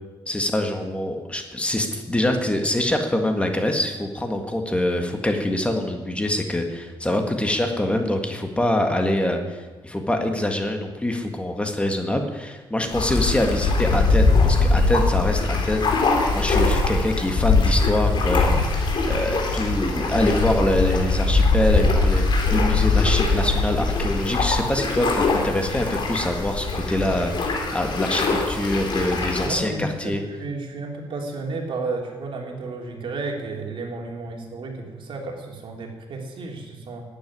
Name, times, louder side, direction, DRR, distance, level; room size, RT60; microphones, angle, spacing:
voice 1, 0.3-30.2, left 1 dB, 10° left, 4 dB, 1.8 m, -25 dB
sound 1, 12.9-29.5, left 3 dB, 55° left, 3.5 m, -21 dB
voice 2, 29.4-37.0, right 3 dB, 65° right, 1 dB, 3.0 m, -32 dB
11.5 x 9.4 x 9.7 m, 1.2 s
cardioid pair, 105°, 9 cm